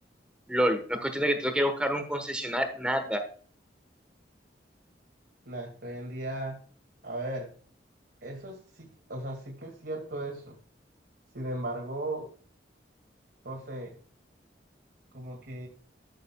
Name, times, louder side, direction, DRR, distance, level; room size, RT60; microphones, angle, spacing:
voice 1, 0.5-3.2, equal, 5° right, 6 dB, 1.1 m, -28 dB
voice 2, 5.5-6.6 7.0-7.5 8.2-10.6 11.3-12.3 13.4-13.9 15.1-15.7, right 1 dB, 75° right, -2 dB, 2.2 m, -37 dB
14.0 x 6.8 x 2.3 m, 0.43 s
head